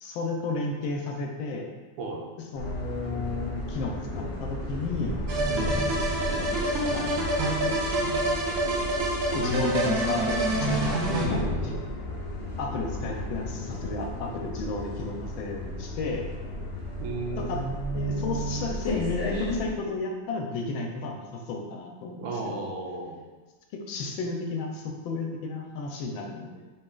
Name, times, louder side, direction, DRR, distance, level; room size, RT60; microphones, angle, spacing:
voice 1, 0.0-1.7 2.4-5.1 6.9-7.6 8.6-8.7 9.3-11.7 12.6-16.3 17.4-17.6 17.9-22.7 23.7-26.7, left 3 dB, 80° left, 2 dB, 1.3 m, -33 dB
sound 1, 2.5-19.7, left 1 dB, 60° left, 0.9 m, -34 dB
sound 2, 5.3-11.3, right 1 dB, 55° right, 1.1 m, -27 dB
voice 2, 11.1-11.6 17.0-18.7 22.2-23.2, right 3 dB, 75° right, -1 dB, 1.4 m, -33 dB
5.4 x 3.6 x 2.3 m, 1.2 s
omnidirectional pair, 2.3 m